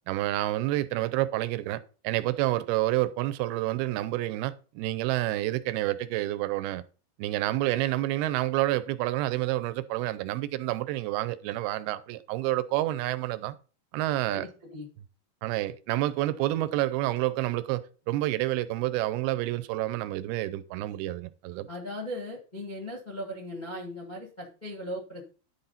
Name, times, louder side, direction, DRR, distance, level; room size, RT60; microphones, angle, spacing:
voice 1, 0.1-6.8 7.2-13.6 13.9-14.5 15.4-21.7, right 16 dB, 85° right, 2.5 m, -29 dB
voice 2, 14.3-14.9 21.7-25.2, left 1 dB, 45° left, 0.5 m, -38 dB
10.5 x 4.0 x 5.6 m
omnidirectional pair, 4.4 m